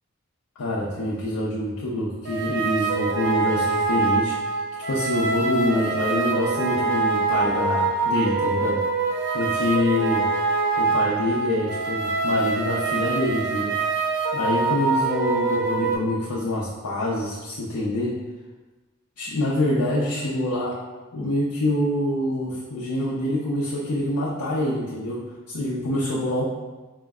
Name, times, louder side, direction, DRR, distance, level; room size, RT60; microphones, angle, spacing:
voice 1, 0.6-4.4 4.9-8.8 9.3-10.2 10.8-13.7 14.3-18.1 19.2-20.8 21.1-25.2 25.5-26.5, left 1 dB, 75° left, -7 dB, 0.6 m, -25 dB
sound 1, 2.2-16.0, right 4 dB, 50° right, 0.5 m, -24 dB
4.4 x 2.1 x 3.4 m, 1.2 s
head